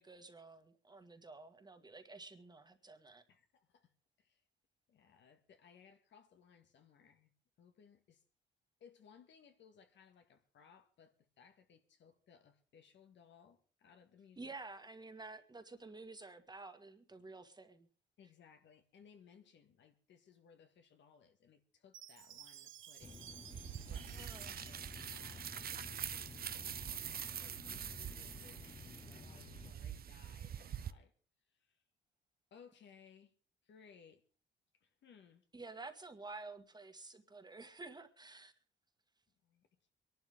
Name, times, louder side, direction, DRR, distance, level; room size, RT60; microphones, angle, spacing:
voice 1, 0.0-3.2 14.4-17.9 24.1-24.5 25.3-25.4 35.5-38.5, right 3 dB, 20° right, 7 dB, 2.0 m, -51 dB
voice 2, 3.3-3.9 4.2-4.4 4.9-7.3 7.6-8.2 8.8-14.5 18.2-23.2 23.9-27.1 27.4-31.1 31.5-31.8 32.5-33.3 33.6-34.2 34.7-35.5 39.4-39.7, left 7 dB, 65° left, 6 dB, 2.1 m, -63 dB
Chime, 21.9-26.1, right 11 dB, 75° right, 1.0 m, -56 dB
sound 1, 23.0-29.7, left 4 dB, 25° left, 0.7 m, -53 dB
sound 2, 23.5-30.9, right 9 dB, 50° right, 0.7 m, -45 dB
23.5 x 11.5 x 3.7 m, 0.39 s
cardioid pair, 90°, 20 cm